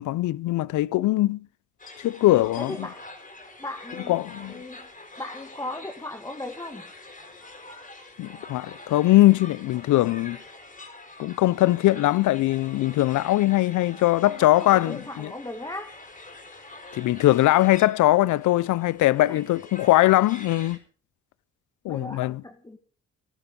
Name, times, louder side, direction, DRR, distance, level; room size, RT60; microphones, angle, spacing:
voice 1, 0.0-1.5 2.0-2.8 4.1-4.5 8.2-10.4 11.2-15.3 16.9-20.8 21.8-22.4, left 16 dB, 75° left, 0.6 m, -21 dB
sound 1, 1.8-20.8, left 2 dB, 25° left, 5.3 m, -45 dB
voice 2, 2.6-3.1 3.6-4.2 4.5-4.9 5.2-6.9 14.3-16.0 19.3-19.4 21.9-22.8, left 2 dB, 10° left, 1.9 m, -37 dB
18.5 x 12.0 x 5.3 m
cardioid pair, 90°, 30 cm